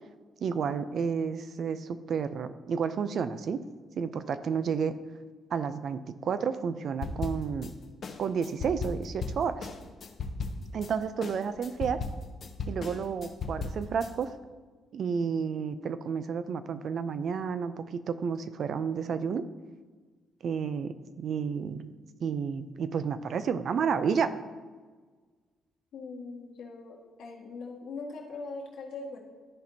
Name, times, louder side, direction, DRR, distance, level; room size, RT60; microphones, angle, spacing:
voice 1, 0.4-3.6 4.0-4.9 5.5-7.7 8.2-9.7 10.7-12.0 12.7-14.3 14.9-19.4 20.4-21.9 22.2-24.4, right 6 dB, 60° right, 12 dB, 0.4 m, -31 dB
sound 1, 7.0-7.7 8.0-10.9 11.2-14.1, left 3 dB, 50° left, 0.7 m, -36 dB
voice 2, 25.9-29.2, left 3 dB, 80° left, -3 dB, 1.7 m, -41 dB
13.0 x 4.4 x 2.8 m, 1.4 s
cardioid pair, 90°, 0 cm